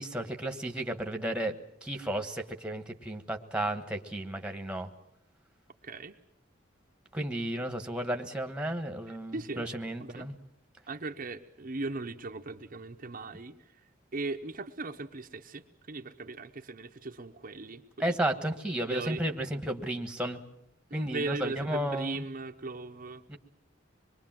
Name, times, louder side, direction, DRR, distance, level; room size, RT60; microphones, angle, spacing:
voice 1, 0.0-1.5 1.8-4.9 7.1-10.3 18.0-20.4 20.9-22.2 23.3-23.4, right 1 dB, 5° right, 5 dB, 1.4 m, -33 dB
voice 2, 5.8-6.2 9.1-9.7 10.0-10.3 10.9-13.6 14.1-18.2 18.7-19.2 20.9-23.2, right 3 dB, 45° right, 4 dB, 0.8 m, -38 dB
26.0 x 22.0 x 7.5 m, 0.78 s
head